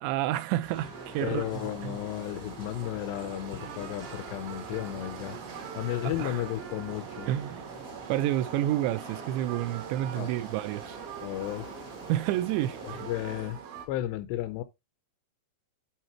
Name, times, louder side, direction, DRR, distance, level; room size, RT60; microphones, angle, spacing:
voice 1, 0.0-1.4 1.8-1.9 6.2-6.4 7.3-7.6 8.1-11.0 12.1-13.1, right 14 dB, 85° right, 2.8 m, -29 dB
sound 1, 0.6-13.5, right 2 dB, 50° right, 1.0 m, -46 dB
sound 2, 0.9-13.9, right 8 dB, 70° right, 2.5 m, -44 dB
voice 2, 1.2-5.4 5.8-7.3 10.2-10.3 11.2-11.7 12.8-13.6 13.9-14.6, left 13 dB, 80° left, 2.6 m, -33 dB
10.5 x 4.2 x 3.0 m
omnidirectional pair, 5.2 m